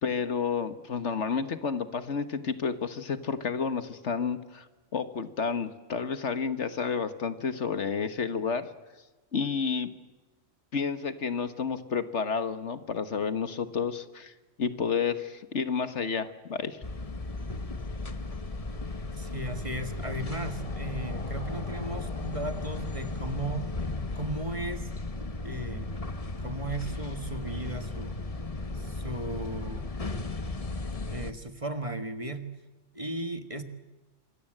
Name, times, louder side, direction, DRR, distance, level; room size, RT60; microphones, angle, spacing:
voice 1, 0.0-4.7 4.9-8.7 9.3-9.9 10.7-14.3 14.6-16.8, left 5 dB, 70° left, 11 dB, 1.7 m, -30 dB
Dumpster car, 16.8-31.3, left 3 dB, 30° left, 1.2 m, -35 dB
voice 2, 19.1-23.7 24.1-24.9 25.4-25.9 26.4-28.2 28.7-29.9 31.1-32.5 32.9-33.6, right 2 dB, 25° right, 8 dB, 1.8 m, -36 dB
26.5 x 22.0 x 7.9 m, 1.2 s
omnidirectional pair, 1.3 m